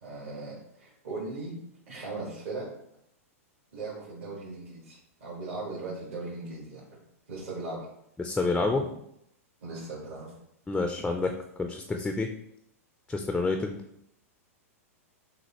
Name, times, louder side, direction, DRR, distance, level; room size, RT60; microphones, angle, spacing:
voice 1, 0.0-1.6 1.9-2.7 3.7-6.8 7.3-7.8 9.6-10.3, right 3 dB, 70° right, -7 dB, 1.6 m, -38 dB
voice 2, 8.2-8.9 10.7-11.3 11.6-12.3 13.1-13.8, left 3 dB, 10° left, 4 dB, 0.4 m, -28 dB
6.3 x 2.4 x 2.9 m, 0.76 s
hypercardioid pair, 115°, 8 cm